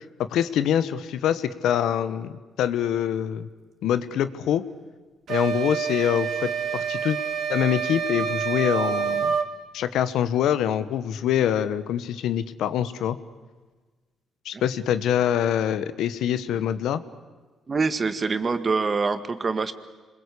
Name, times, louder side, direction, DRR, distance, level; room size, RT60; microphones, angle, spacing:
voice 1, 0.2-3.5 3.8-4.6 5.3-7.2 7.5-9.3 9.7-13.2 14.4-17.0, left 10 dB, 80° left, 13 dB, 1.2 m, -25 dB
sound 1, 5.3-9.5, right 7 dB, 65° right, 2.2 m, -27 dB
voice 2, 17.7-19.7, right 4 dB, 35° right, 10 dB, 1.8 m, -25 dB
27.0 x 21.5 x 8.5 m, 1.3 s
cardioid pair, 90°, 0 cm